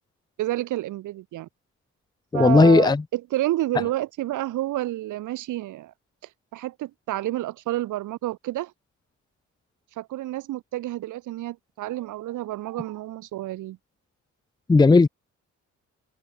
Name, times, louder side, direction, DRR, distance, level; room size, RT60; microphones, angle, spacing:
voice 1, 0.4-1.5 2.3-5.9 6.5-8.7 10.0-13.8, right 15 dB, 85° right, 2.7 m, -29 dB
voice 2, 2.3-3.0 14.7-15.1, left 3 dB, 15° left, 0.6 m, -15 dB
cardioid pair, 90°, 30 cm